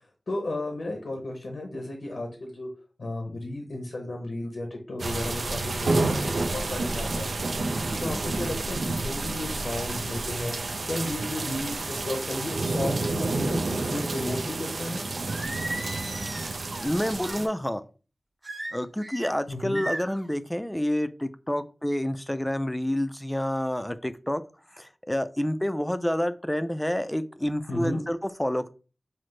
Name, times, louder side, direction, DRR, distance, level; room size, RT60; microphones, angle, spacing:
voice 1, 0.0-2.7 3.0-15.0 19.5-19.8 27.7-28.0, left 1 dB, 85° left, 3 dB, 0.8 m, -34 dB
sound 1, 5.0-17.5, right 2 dB, 85° right, 0.5 m, -29 dB
voice 2, 7.9-8.2 16.8-17.8 18.7-24.4 24.7-28.7, equal, 10° left, 11 dB, 0.4 m, -28 dB
Singing, 15.3-17.5 18.4-19.3 19.7-20.3, right 1 dB, 40° right, 1.3 m, -36 dB
5.8 x 2.0 x 3.2 m, 0.36 s
wide cardioid pair, 55°, 0 cm